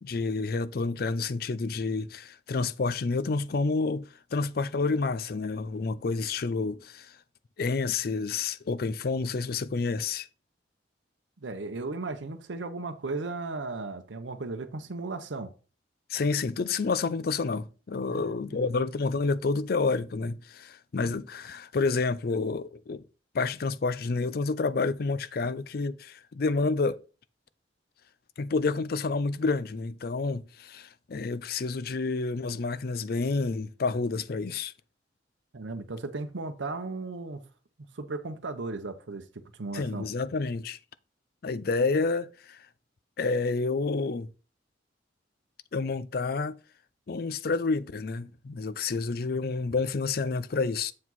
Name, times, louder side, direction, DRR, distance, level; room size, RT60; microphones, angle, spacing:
voice 1, 0.0-7.1 7.6-10.3 16.1-23.0 23.3-27.0 28.4-34.7 39.7-40.8 41.4-42.6 43.2-44.3 45.7-46.6 47.1-50.9, left 4 dB, 55° left, 0.4 m, -29 dB
voice 2, 11.4-15.5 18.1-18.6 35.5-37.4 37.9-39.2 39.5-40.1, right 3 dB, 85° right, 0.8 m, -36 dB
7.4 x 4.7 x 4.0 m
head